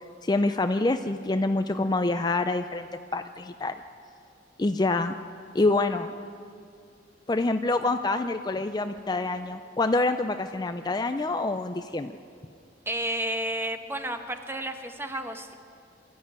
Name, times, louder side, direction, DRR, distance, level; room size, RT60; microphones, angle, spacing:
voice 1, 0.2-2.9 3.1-3.8 4.6-5.1 5.5-6.1 7.3-12.2, left 2 dB, 25° left, 9 dB, 0.5 m, -26 dB
voice 2, 12.9-15.5, right 1 dB, 15° right, 7 dB, 1.2 m, -31 dB
23.5 x 13.5 x 9.6 m, 2.5 s
head